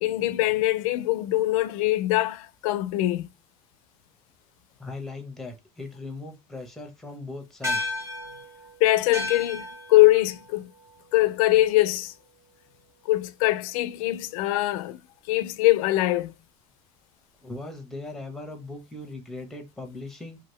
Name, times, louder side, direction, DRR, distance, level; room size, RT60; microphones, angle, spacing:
voice 1, 0.0-3.3 8.8-10.7 11.1-12.1 13.1-15.0 15.3-16.3, left 17 dB, 80° left, 0.4 m, -22 dB
voice 2, 4.8-8.1 17.4-20.4, left 2 dB, ahead, 0.7 m, -39 dB
sound 1, 7.6-12.3, left 2 dB, 15° right, 1.2 m, -35 dB
2.8 x 2.4 x 3.1 m
supercardioid pair, 125°, 18 cm